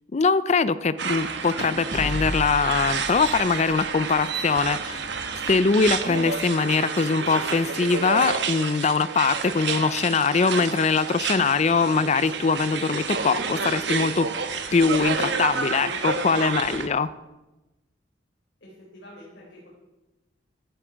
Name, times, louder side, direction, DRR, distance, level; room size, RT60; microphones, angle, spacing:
voice 1, 0.1-5.1 5.5-14.3 14.7-17.1, left 4 dB, 35° left, 15 dB, 0.4 m, -22 dB
sound 1, 1.0-16.9, right 5 dB, 65° right, 1.2 m, -30 dB
sound 2, 1.1-4.2, equal, 45° right, 1.7 m, -35 dB
voice 2, 18.6-19.7, left 1 dB, 70° left, -6 dB, 4.1 m, -47 dB
15.0 x 10.0 x 4.6 m, 1.0 s
head